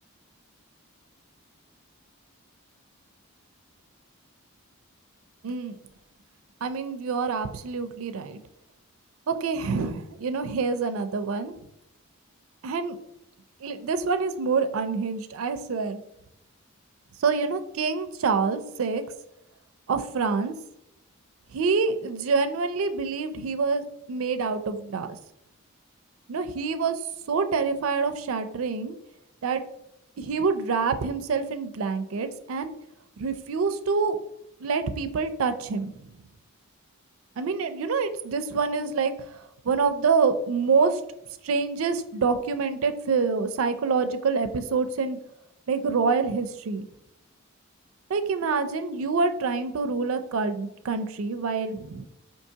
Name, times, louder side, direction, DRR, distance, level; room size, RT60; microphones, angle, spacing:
voice 1, 5.4-5.8 6.6-8.4 9.3-11.5 12.6-13.0 13.6-16.0 17.2-19.0 19.9-20.5 21.5-25.1 26.3-27.0 27.3-29.0 29.4-29.6 30.2-32.7 33.2-34.2 34.6-36.1 37.4-41.0 41.4-45.2 45.7-46.9 48.1-52.1, right 5 dB, 70° right, 8 dB, 0.4 m, -26 dB
4.5 x 2.8 x 2.7 m, 0.82 s
head